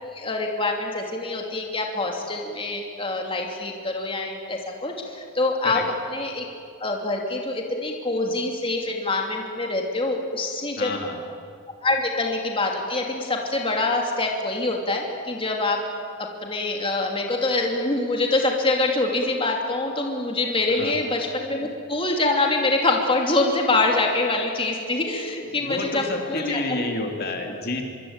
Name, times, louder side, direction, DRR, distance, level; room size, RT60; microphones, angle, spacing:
voice 1, 0.0-5.8 6.1-6.4 6.8-10.9 11.8-15.8 16.4-26.8, left 2 dB, 25° left, 1 dB, 2.8 m, -25 dB
voice 2, 10.8-11.2 20.7-21.0 25.5-27.8, left 2 dB, 50° left, 3 dB, 2.9 m, -29 dB
24.5 x 24.5 x 8.9 m, 2.4 s
head